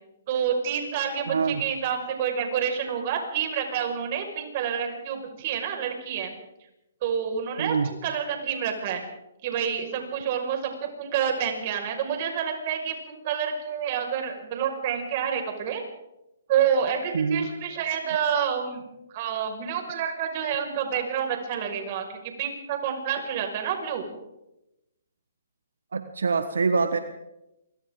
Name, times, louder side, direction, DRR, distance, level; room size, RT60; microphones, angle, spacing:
voice 1, 0.3-6.3 7.0-9.0 9.4-15.8 16.5-18.8 19.1-24.1, right 8 dB, 40° right, 4 dB, 5.8 m, -28 dB
voice 2, 1.3-1.6 7.6-7.9 17.1-17.5 25.9-27.0, right 5 dB, 80° right, 9 dB, 1.4 m, -25 dB
27.5 x 24.5 x 3.9 m, 0.89 s
hypercardioid pair, 140°, 0 cm